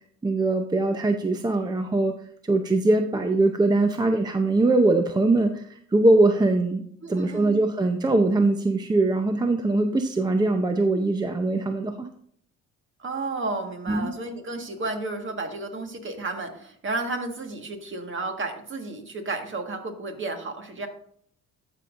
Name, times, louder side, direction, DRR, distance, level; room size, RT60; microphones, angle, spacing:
voice 1, 0.2-2.1 2.4-6.8 7.1-12.1 13.9-14.1, right 2 dB, 15° right, 6 dB, 0.6 m, -22 dB
voice 2, 7.0-7.6 13.0-20.9, right 3 dB, 40° right, 5 dB, 1.6 m, -32 dB
13.5 x 5.4 x 2.5 m, 0.64 s
cardioid pair, 90°, 30 cm